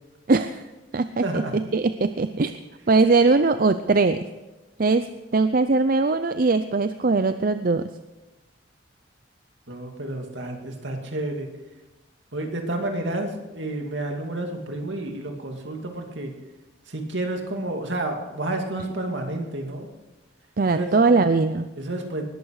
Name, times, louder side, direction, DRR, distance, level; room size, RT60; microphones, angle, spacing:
voice 1, 0.3-0.6 0.9-2.6 2.9-4.3 4.8-5.1 5.3-7.9 20.6-21.7, right 3 dB, 45° right, 10 dB, 0.5 m, -20 dB
voice 2, 1.2-1.6 9.7-11.5 12.3-16.4 16.9-19.9 20.7-20.9 21.8-22.2, right 1 dB, 70° right, 3 dB, 2.6 m, -30 dB
20.0 x 14.0 x 4.9 m, 1.1 s
head